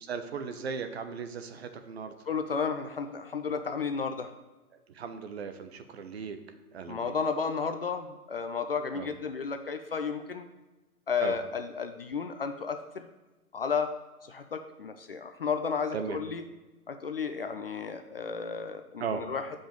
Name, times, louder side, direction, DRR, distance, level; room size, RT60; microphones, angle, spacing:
voice 1, 0.0-2.1 4.9-6.4 6.7-7.2 8.9-9.1 11.2-11.4 15.9-16.2 19.0-19.2, right 6 dB, 45° right, 8 dB, 0.8 m, -37 dB
voice 2, 2.3-4.3 6.9-10.5 11.1-13.1 13.5-14.0 14.3-16.4 16.9-19.4, left 5 dB, 40° left, 7 dB, 0.5 m, -33 dB
7.6 x 5.3 x 5.1 m, 1.1 s
hypercardioid pair, 150°, 46 cm